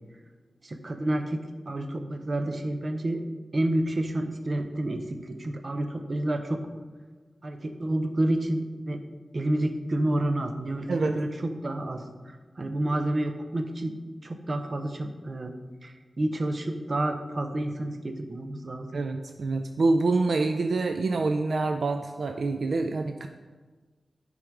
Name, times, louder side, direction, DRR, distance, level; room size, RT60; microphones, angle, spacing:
voice 1, 0.6-3.2 3.5-6.6 7.4-9.0 9.3-13.9 14.2-15.5 15.8-18.9, right 1 dB, 40° right, 6 dB, 0.7 m, -29 dB
voice 2, 18.9-23.3, right 3 dB, 65° right, 6 dB, 0.4 m, -26 dB
10.5 x 3.8 x 4.7 m, 1.4 s
wide cardioid pair, 120°, 0 cm